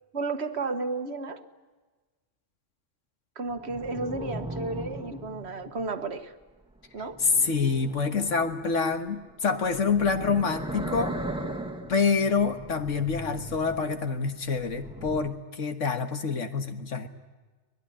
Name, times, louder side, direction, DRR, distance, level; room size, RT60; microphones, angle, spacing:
voice 1, 0.1-1.4 3.3-6.3 6.9-7.2, right 3 dB, 60° right, 10 dB, 1.5 m, -32 dB
sound 1, 3.5-6.1 7.0-8.8 9.6-14.1 14.4-15.2, right 1 dB, 5° right, 1.5 m, -38 dB
voice 2, 7.2-11.2 11.9-17.1, left 5 dB, 80° left, 8 dB, 1.8 m, -26 dB
24.0 x 19.5 x 10.0 m, 1.3 s
omnidirectional pair, 1.3 m